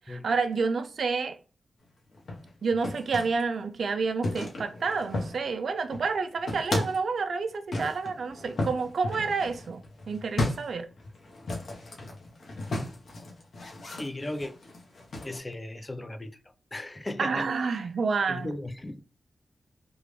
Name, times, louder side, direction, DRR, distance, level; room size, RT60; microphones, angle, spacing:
voice 1, 0.1-1.4 2.6-10.9 17.2-18.5, right 4 dB, 75° right, 0.4 m, -29 dB
sound 1, 2.1-3.4 4.2-5.6 5.8-7.1 7.7-15.4, left 2 dB, 70° left, 1.0 m, -35 dB
voice 2, 14.0-14.5 15.2-16.3 16.7-17.5 18.3-19.0, left 1 dB, 30° left, 0.6 m, -36 dB
3.5 x 2.4 x 3.2 m
cardioid pair, 50°, 0 cm